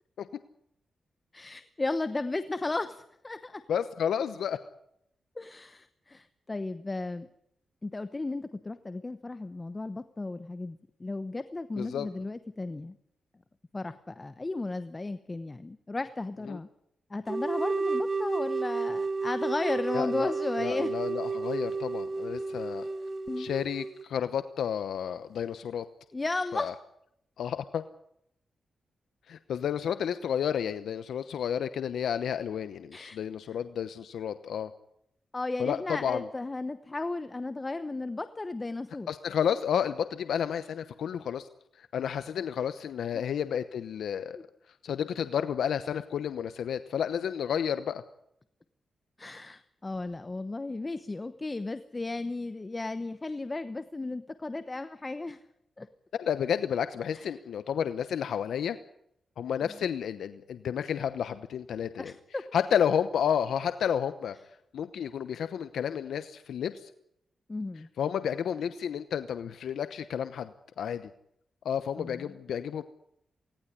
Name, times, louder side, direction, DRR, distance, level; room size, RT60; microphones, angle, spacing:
voice 1, 1.3-3.6 5.4-7.3 7.8-13.0 13.7-16.7 17.1-20.9 23.3-23.5 26.1-26.7 32.9-33.2 35.3-39.1 44.3-44.4 49.2-55.4 55.8-55.9 57.1-57.2 62.0-62.4 67.5-67.9 72.0-72.3, left 2 dB, 25° left, 11 dB, 0.9 m, -35 dB
voice 2, 3.7-4.6 11.8-12.1 16.5-16.6 19.9-22.9 23.4-25.9 26.5-26.7 27.4-27.8 29.3-34.7 35.6-36.3 39.1-41.5 41.8-44.4 44.8-48.0 56.1-58.8 59.4-62.1 62.5-64.4 64.7-66.9 68.0-71.1 71.6-72.8, left 8 dB, 85° left, 11 dB, 0.9 m, -31 dB
sound 1, 17.3-24.0, right 4 dB, 35° right, 0.9 m, -32 dB
19.0 x 18.0 x 9.9 m, 0.76 s
cardioid pair, 105°, 0 cm